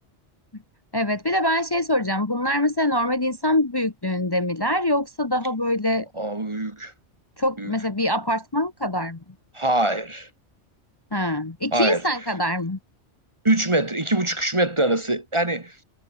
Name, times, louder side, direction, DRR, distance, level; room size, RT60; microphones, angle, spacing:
voice 1, 0.9-6.1 7.4-9.2 11.1-12.8, left 1 dB, 20° left, 1.1 m, -24 dB
voice 2, 6.1-6.9 7.6-7.7 9.5-10.3 11.7-12.0 13.4-15.7, right 2 dB, 25° right, 1.5 m, -23 dB
omnidirectional pair, 1.2 m